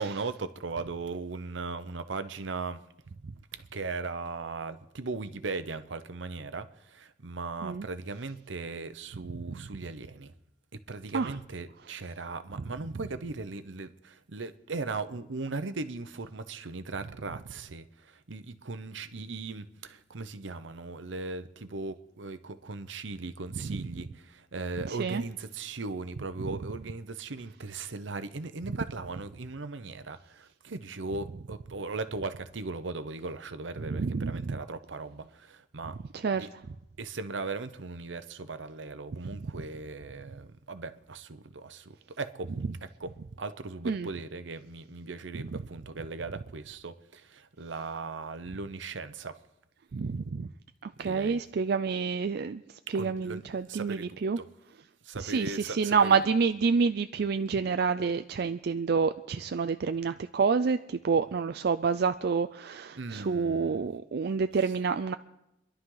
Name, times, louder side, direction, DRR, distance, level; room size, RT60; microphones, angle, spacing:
voice 1, 0.0-2.8 3.5-10.3 10.7-36.0 36.3-36.5 37.0-42.5 42.8-49.4 51.0-51.4 52.9-54.5 55.0-56.2 57.2-57.3 62.9-63.8, right 3 dB, 80° right, 0.9 m, -38 dB
voice 2, 24.8-25.2 33.9-34.6 36.1-36.5 43.9-44.1 49.9-50.5 50.8-52.6 52.9-54.4 55.2-65.1, right 5 dB, 60° right, 0.4 m, -28 dB
25.5 x 11.5 x 3.9 m
head